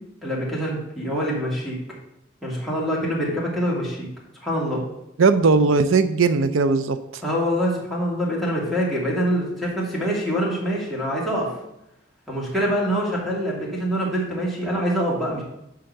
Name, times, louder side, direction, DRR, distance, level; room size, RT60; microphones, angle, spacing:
voice 1, 0.2-1.8 2.4-4.1 4.4-4.8 7.2-11.5 12.3-15.4, equal, ahead, -6 dB, 2.6 m, -25 dB
voice 2, 5.2-7.2, right 4 dB, 85° right, 10 dB, 0.5 m, -18 dB
10.5 x 3.8 x 6.6 m, 0.85 s
head